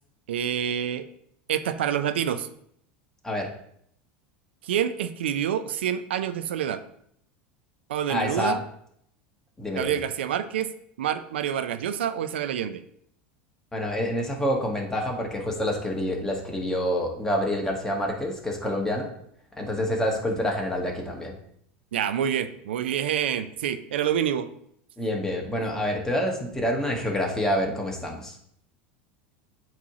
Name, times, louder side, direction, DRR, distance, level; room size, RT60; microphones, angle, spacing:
voice 1, 0.3-1.1 1.5-2.5 4.6-6.8 7.9-8.6 9.7-10.7 11.0-12.8 21.9-24.5, right 9 dB, 85° right, 11 dB, 0.4 m, -27 dB
voice 2, 8.1-8.6 9.6-10.0 13.7-19.1 19.6-21.3 25.0-28.3, equal, 10° left, 0 dB, 1.4 m, -27 dB
8.4 x 3.1 x 3.7 m, 0.69 s
hypercardioid pair, 100°, 6 cm